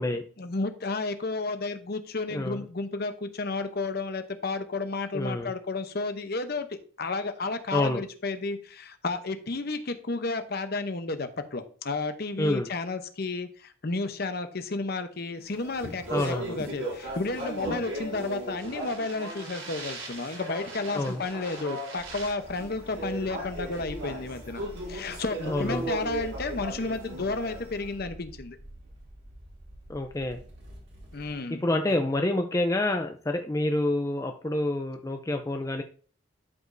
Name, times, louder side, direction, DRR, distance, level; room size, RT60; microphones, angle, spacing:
voice 1, 0.4-6.7 7.0-28.6 31.1-31.6, left 3 dB, 50° left, 9 dB, 0.8 m, -32 dB
voice 2, 2.3-2.6 5.1-5.5 7.7-8.0 12.4-12.7 16.1-16.5 20.9-21.2 25.5-25.9 29.9-30.4 31.6-35.8, left 1 dB, 15° left, 5 dB, 0.4 m, -27 dB
Speech, 15.5-27.9, right 1 dB, 80° right, 4.2 m, -37 dB
sound 1, 22.0-31.4, equal, 60° right, 2.4 m, -47 dB
12.0 x 5.1 x 2.6 m, 0.42 s
head